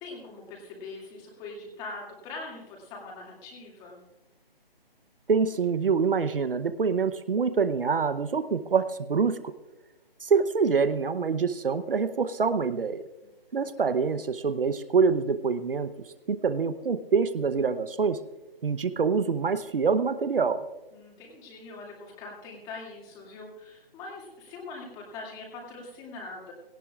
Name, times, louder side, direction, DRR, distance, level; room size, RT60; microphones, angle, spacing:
voice 1, 0.0-4.0 13.8-13.9 20.9-26.5, left 3 dB, 15° left, -1 dB, 2.3 m, -42 dB
voice 2, 5.3-9.4 10.2-13.0 13.5-15.9 16.3-18.2 18.6-20.6, right 5 dB, 65° right, 12 dB, 0.8 m, -25 dB
17.5 x 17.0 x 2.4 m, 1.1 s
figure-of-eight pair, 155°, 30 cm